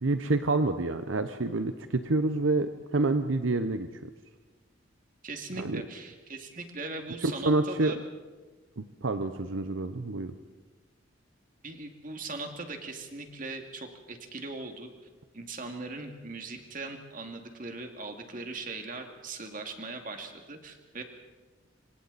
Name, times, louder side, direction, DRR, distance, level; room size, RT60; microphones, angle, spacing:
voice 1, 0.0-4.1 5.6-5.8 7.2-7.9 8.8-10.3, right 2 dB, 75° right, 9 dB, 0.9 m, -28 dB
voice 2, 5.2-8.0 11.6-14.9 15.3-21.0, right 3 dB, 40° right, 4 dB, 2.4 m, -40 dB
26.5 x 26.0 x 4.2 m, 1.3 s
head